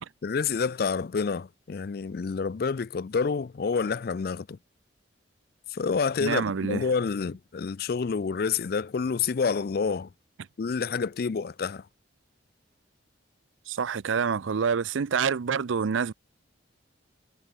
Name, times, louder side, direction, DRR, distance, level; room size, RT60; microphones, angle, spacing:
voice 1, 0.2-4.6 5.7-10.1 10.6-11.8, left 5 dB, 50° left, 0.4 m, -28 dB
voice 2, 6.2-6.9 13.7-16.1, right 6 dB, 85° right, 0.5 m, -27 dB
head